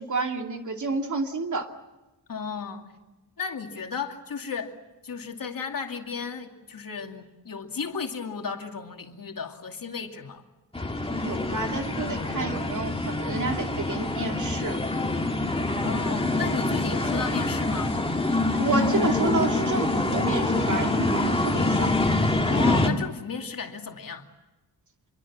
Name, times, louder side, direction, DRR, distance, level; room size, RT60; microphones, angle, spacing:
voice 1, 0.0-1.7 11.1-14.9 18.6-22.0, right 3 dB, 50° right, 2.6 m, -30 dB
voice 2, 2.3-2.9 3.4-4.7 5.0-10.4 15.6-18.0 22.4-24.3, left 5 dB, 55° left, 2.6 m, -34 dB
sound 1, 10.7-22.9, left 2 dB, 15° left, 2.5 m, -25 dB
27.0 x 23.5 x 7.4 m
wide cardioid pair, 100°, 39 cm